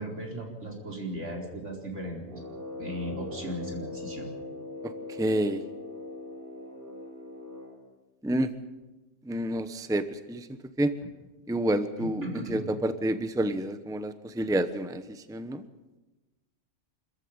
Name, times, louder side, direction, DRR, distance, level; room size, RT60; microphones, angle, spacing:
voice 1, 0.0-2.4 2.7-4.3 12.0-12.7, right 1 dB, 75° right, 0 dB, 4.8 m, -36 dB
Brass instrument, 2.2-7.9, left 2 dB, 45° right, 4.5 m, -41 dB
voice 2, 5.2-5.6 8.2-8.5 9.3-10.5 10.8-10.9 11.5-15.7, right 1 dB, 5° right, 11 dB, 0.8 m, -29 dB
26.0 x 14.5 x 8.9 m, 1.1 s
omnidirectional pair, 1.2 m